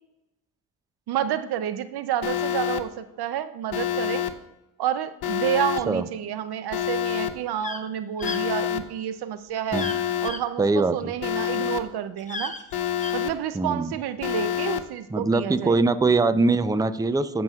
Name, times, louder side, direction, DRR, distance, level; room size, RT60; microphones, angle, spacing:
voice 1, 1.1-4.3 4.8-9.9 10.2-12.5 13.1-15.8, right 10 dB, 75° right, 12 dB, 0.6 m, -29 dB
Alarm, 2.2-2.8 3.7-4.3 5.2-5.8 6.7-7.3 8.2-8.8 9.7-10.3 11.2-11.8 12.7-13.3 14.2-14.8, left 11 dB, 75° left, 0.8 m, -27 dB
sound 1, 7.6-7.8 8.2-8.4 9.7-10.0 10.3-10.4 12.2-13.1, left 2 dB, 20° left, 1.0 m, -34 dB
voice 2, 10.6-11.1 13.5-14.0 15.1-17.4, right 3 dB, 10° right, 12 dB, 0.5 m, -22 dB
18.0 x 6.1 x 2.4 m, 0.97 s
cardioid pair, 65°, 39 cm